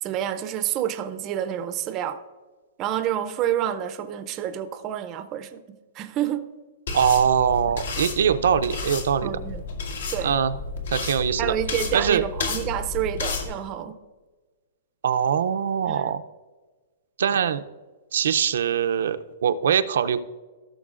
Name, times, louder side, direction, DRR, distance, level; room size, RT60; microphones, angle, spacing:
voice 1, 0.0-2.2 2.8-6.5 9.2-9.6 10.1-10.4 11.4-14.0 15.9-16.0, right 10 dB, 20° right, 9 dB, 0.5 m, -28 dB
sound 1, 6.9-13.5, left 4 dB, 75° left, 2.0 m, -32 dB
voice 2, 6.9-9.3 10.2-10.6 10.9-11.6 11.9-12.2 15.0-16.2 17.2-17.6 18.1-20.2, right 8 dB, 75° right, 9 dB, 0.5 m, -22 dB
16.0 x 6.6 x 2.5 m, 1.3 s
hypercardioid pair, 170°, 0 cm